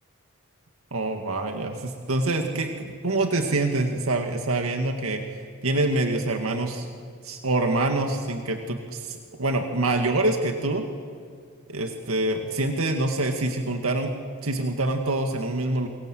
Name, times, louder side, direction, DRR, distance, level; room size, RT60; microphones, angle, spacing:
voice 1, 0.9-5.2 5.6-6.9 7.2-10.8 11.7-14.1 14.4-15.9, right 2 dB, 80° right, 4 dB, 1.9 m, -25 dB
29.0 x 24.0 x 7.8 m, 2.1 s
head